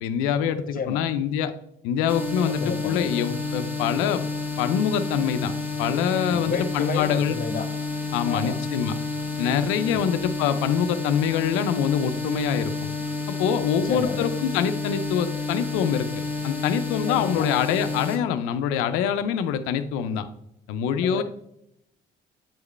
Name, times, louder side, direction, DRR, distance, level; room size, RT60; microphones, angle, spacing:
voice 1, 0.0-1.5 1.8-4.2 4.6-5.5 5.8-7.4 8.1-9.0 9.4-12.9 13.3-20.3 20.7-21.2, left 8 dB, 90° left, 10 dB, 0.5 m, -25 dB
voice 2, 0.6-1.0 2.4-3.1 6.3-7.7 8.3-8.6 9.9-10.1 13.8-14.3 17.1-17.5 21.0-21.2, left 5 dB, 40° left, 8 dB, 1.1 m, -31 dB
sound 1, 2.1-18.2, left 3 dB, 10° right, 1.6 m, -30 dB
9.0 x 4.9 x 3.2 m, 0.78 s
supercardioid pair, 60°, 21 cm